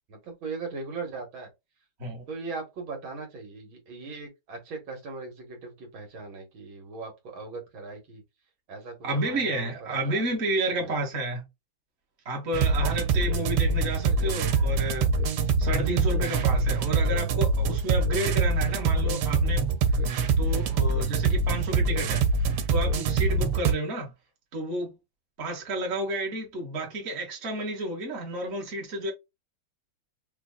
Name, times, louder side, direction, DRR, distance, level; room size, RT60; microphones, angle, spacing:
voice 1, 0.1-1.5 2.3-8.2 8.7-10.5 10.8-11.0 13.9-14.8, right 4 dB, 65° right, 2.2 m, -39 dB
voice 2, 9.0-11.4 12.2-15.1 15.6-19.7 20.0-20.1 20.4-22.2 22.7-24.1 24.5-25.0 25.4-29.1, right 1 dB, 35° right, 1.5 m, -31 dB
sound 1, 12.5-23.7, right 4 dB, 85° right, 1.6 m, -24 dB
4.9 x 2.5 x 2.4 m
omnidirectional pair, 2.4 m